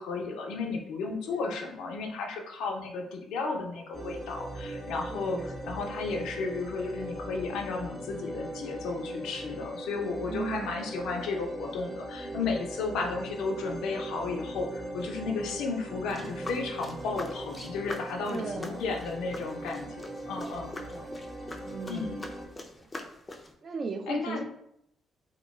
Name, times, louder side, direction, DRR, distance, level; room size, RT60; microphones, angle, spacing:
voice 1, 0.0-20.7 21.9-22.2 24.1-24.4, left 4 dB, 85° left, 2 dB, 0.4 m, -33 dB
sound 1, 3.9-22.5, right 1 dB, 20° right, 0.7 m, -40 dB
voice 2, 5.1-5.5 10.2-10.8 16.2-16.5 18.2-18.8 20.4-21.1 21.6-22.2 23.0-23.1 23.6-24.4, right 4 dB, 45° right, 6 dB, 0.3 m, -38 dB
sound 2, 16.1-23.5, left 2 dB, 25° left, 0.4 m, -44 dB
2.2 x 2.1 x 3.0 m, 0.76 s
cardioid pair, 90°, 0 cm